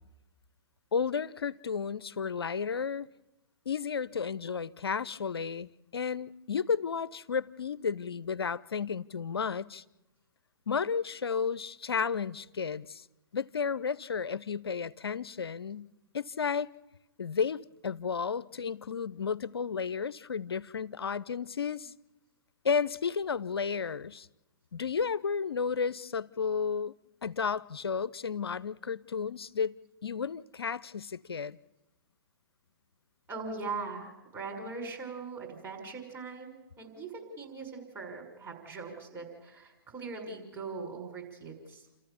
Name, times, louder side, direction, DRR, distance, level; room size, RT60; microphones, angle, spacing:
voice 1, 0.9-3.1 3.7-9.8 10.7-13.0 13.3-16.7 17.2-21.9 22.6-24.3 24.7-26.9 27.2-29.8 30.0-31.6, left 6 dB, 80° left, 0.7 m, -32 dB
voice 2, 33.3-41.9, right 4 dB, 20° right, 6.0 m, -41 dB
29.5 x 14.0 x 7.1 m
hypercardioid pair, 120°, 13 cm